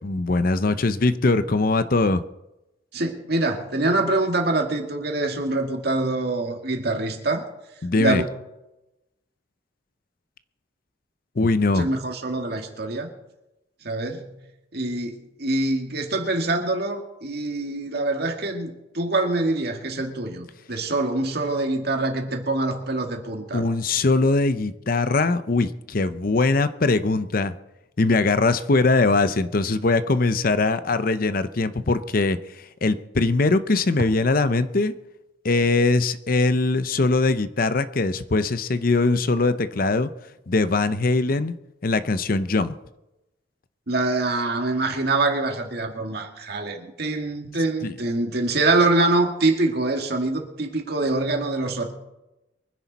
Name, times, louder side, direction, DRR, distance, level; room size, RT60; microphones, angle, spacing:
voice 1, 0.0-2.2 7.8-8.2 11.4-11.9 23.5-27.5 28.0-34.9 35.4-40.1 40.5-41.5 41.8-42.7 47.8-47.9, left 3 dB, 50° left, 12 dB, 0.6 m, -21 dB
voice 2, 2.9-7.5 8.0-8.3 11.7-13.1 13.8-14.4 14.7-23.6 43.9-51.9, right 2 dB, 55° right, 3 dB, 2.1 m, -25 dB
23.5 x 10.5 x 4.1 m, 0.95 s
head